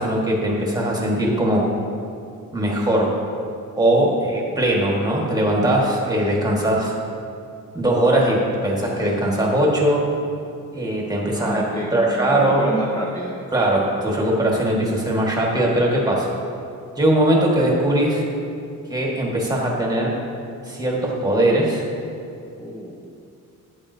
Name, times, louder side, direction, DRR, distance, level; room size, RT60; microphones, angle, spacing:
voice 1, 0.0-1.6 2.5-3.1 3.8-6.9 7.7-10.0 10.7-11.6 11.9-12.7 13.5-16.3 17.0-18.2 18.9-20.1 20.7-21.8, right 1 dB, 10° right, -3 dB, 1.6 m, -20 dB
voice 2, 11.3-13.3 22.6-23.0, equal, 10° left, -3 dB, 0.8 m, -29 dB
12.0 x 8.8 x 2.7 m, 2.5 s
cardioid pair, 135°, 33 cm